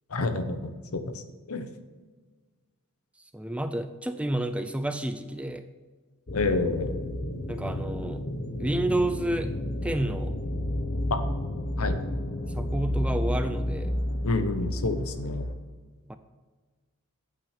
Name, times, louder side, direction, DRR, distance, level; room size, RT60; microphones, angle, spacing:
voice 1, 0.1-1.2 1.5-1.7 6.3-7.0 11.1-11.2 11.8-12.0 14.2-15.5, left 3 dB, 75° left, 9 dB, 0.9 m, -29 dB
voice 2, 3.3-5.7 7.5-8.3 8.6-9.5 9.8-10.4 12.5-13.9 16.1-16.2, right 1 dB, 5° right, 9 dB, 0.4 m, -30 dB
sound 1, 6.3-15.5, left 1 dB, 45° left, 0.9 m, -31 dB
8.5 x 6.1 x 6.6 m, 1.4 s
head